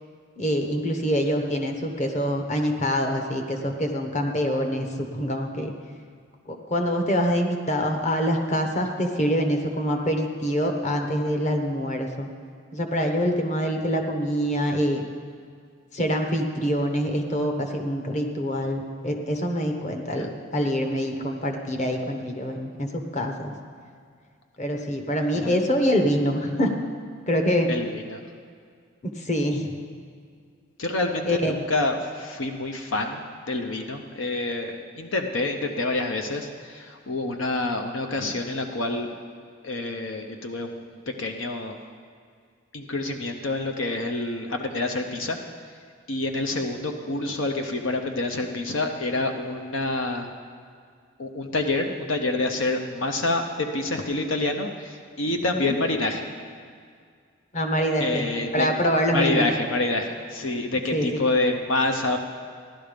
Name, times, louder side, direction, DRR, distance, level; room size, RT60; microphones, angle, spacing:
voice 1, 0.4-5.7 6.5-12.3 12.7-15.1 15.9-23.5 24.6-26.7 27.3-27.7 29.2-29.7 31.3-31.5 55.6-55.8 57.5-59.5 60.9-61.2, equal, 35° left, 4 dB, 1.1 m, -25 dB
voice 2, 27.7-28.2 30.8-39.1 39.6-41.8 42.7-45.4 46.1-50.3 51.2-56.3 58.0-58.7 59.1-62.2, left 2 dB, 70° left, 4 dB, 0.8 m, -27 dB
16.0 x 11.5 x 5.2 m, 2.1 s
head